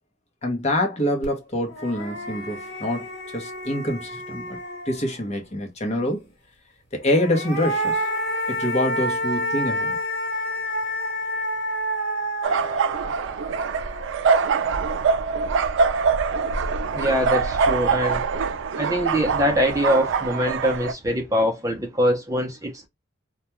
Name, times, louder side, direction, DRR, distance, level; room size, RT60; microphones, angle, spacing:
voice 1, 0.4-4.6 4.9-6.3 6.9-8.1 8.5-10.0, left 1 dB, 35° left, 0.8 m, -26 dB
sound 1, 1.2-1.3 1.7-5.4 7.0-14.3, equal, 55° left, 1.3 m, -29 dB
sound 2, 12.4-20.9, right 5 dB, 75° right, 0.3 m, -24 dB
voice 2, 16.9-18.3 18.7-22.9, equal, 15° right, 0.6 m, -23 dB
2.2 x 2.2 x 2.9 m
head